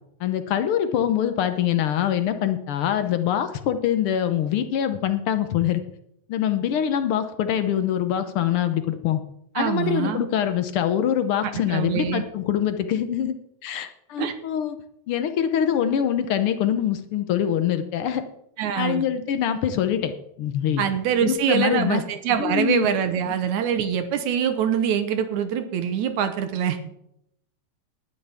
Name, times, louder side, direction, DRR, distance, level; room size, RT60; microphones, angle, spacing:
voice 1, 0.2-5.8 6.3-9.2 9.5-13.3 13.6-14.8 15.1-18.2 18.7-20.1 20.4-20.8 21.2-22.0 22.4-22.9, left 10 dB, 70° left, 9 dB, 1.4 m, -24 dB
voice 2, 9.6-10.3 11.4-12.2 14.2-14.3 18.6-19.0 20.8-26.8, right 8 dB, 85° right, 8 dB, 2.4 m, -24 dB
19.5 x 10.5 x 3.5 m, 0.77 s
omnidirectional pair, 3.3 m